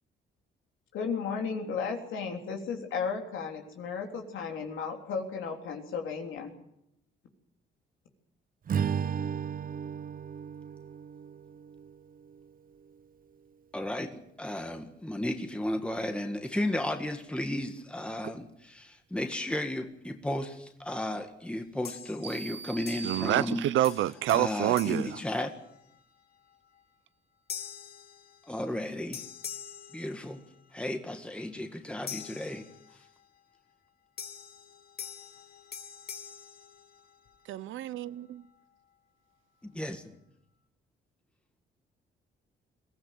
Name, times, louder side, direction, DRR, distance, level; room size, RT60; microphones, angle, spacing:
voice 1, 0.9-6.5, left 5 dB, 80° left, 3.6 m, -34 dB
Strum, 8.7-13.1, right 7 dB, 45° right, 0.9 m, -35 dB
voice 2, 13.7-23.6 24.3-25.5 28.5-29.2 29.9-30.4 30.7-32.7 39.7-40.1, left 1 dB, 5° left, 1.8 m, -34 dB
sound 1, 21.8-22.5 22.9-23.6 23.8-26.0 26.5-26.8 27.5-28.8 29.1-30.8 32.1-33.2 34.2-37.4, left 7 dB, 50° left, 2.0 m, -45 dB
sound 2, 22.2-24.1, right 5 dB, 60° right, 1.4 m, -43 dB
voice 3, 23.0-25.2 37.5-38.4, right 13 dB, 80° right, 0.7 m, -28 dB
22.0 x 15.0 x 9.3 m
cardioid pair, 90°, 20 cm